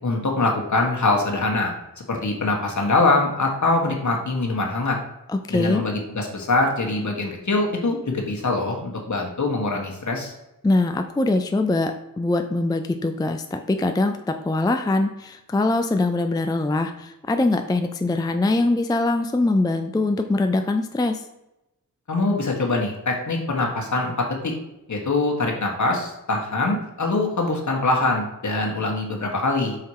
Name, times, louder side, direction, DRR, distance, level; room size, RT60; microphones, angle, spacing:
voice 1, 0.0-5.0 5.5-10.3 22.1-24.5 24.9-29.8, left 2 dB, 55° left, 0 dB, 1.5 m, -23 dB
voice 2, 5.3-5.8 10.6-21.2, left 2 dB, 10° left, 6 dB, 0.4 m, -22 dB
5.6 x 4.3 x 4.8 m, 0.91 s
wide cardioid pair, 80°, 34 cm